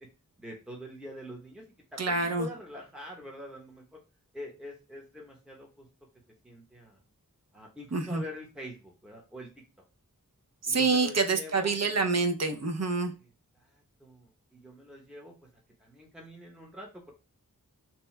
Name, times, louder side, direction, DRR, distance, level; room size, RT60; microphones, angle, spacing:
voice 1, 0.4-1.6 1.9-4.0 4.3-5.9 6.4-7.0 7.5-9.5 10.7-11.8 13.2-13.3 13.5-15.3 15.8-17.1, left 1 dB, 5° right, -1 dB, 0.8 m, -45 dB
voice 2, 2.0-2.5 7.9-8.2 10.6-13.1, right 4 dB, 50° right, 5 dB, 0.6 m, -27 dB
2.8 x 2.2 x 3.1 m, 0.32 s
wide cardioid pair, 40°, 34 cm